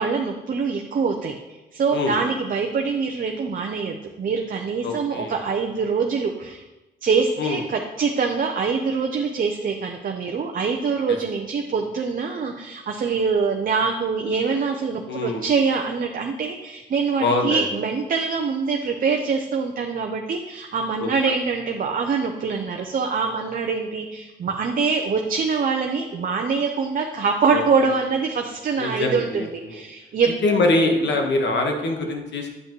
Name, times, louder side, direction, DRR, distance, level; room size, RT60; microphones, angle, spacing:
voice 1, 0.0-1.3 1.7-6.6 7.0-30.3, right 5 dB, 45° right, 3 dB, 0.7 m, -24 dB
voice 2, 4.8-5.3 7.4-7.6 11.1-11.2 15.1-15.4 17.2-17.6 21.0-21.1 27.5-27.6 28.8-29.8 30.4-32.5, left 2 dB, 65° left, 2 dB, 1.4 m, -23 dB
9.6 x 5.5 x 3.1 m, 1.1 s
cardioid pair, 90°, 20 cm